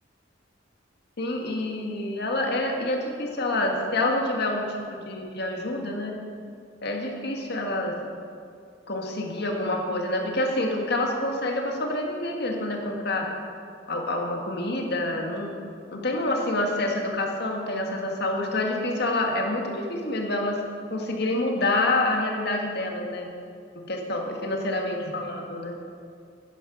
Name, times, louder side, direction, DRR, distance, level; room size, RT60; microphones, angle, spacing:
voice 1, 1.2-6.1 6.8-7.9 8.9-13.3 13.9-15.5 15.9-20.6 20.9-23.3 23.9-25.8, left 2 dB, 60° left, 2 dB, 1.8 m, -27 dB
10.5 x 10.0 x 6.1 m, 2.3 s
head